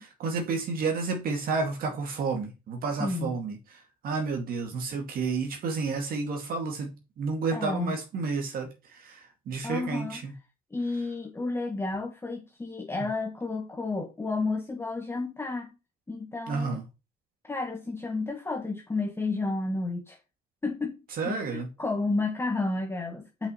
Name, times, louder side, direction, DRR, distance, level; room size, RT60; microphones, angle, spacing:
voice 1, 0.2-10.3 16.5-16.8 21.2-21.7, right 4 dB, 60° right, 2.2 m, -31 dB
voice 2, 3.0-3.3 7.5-7.9 9.6-10.2 10.7-15.7 16.1-16.8 17.5-20.2 20.6-23.5, left 3 dB, 15° left, 1.3 m, -31 dB
5.7 x 5.4 x 5.6 m
cardioid pair, 110°, 17 cm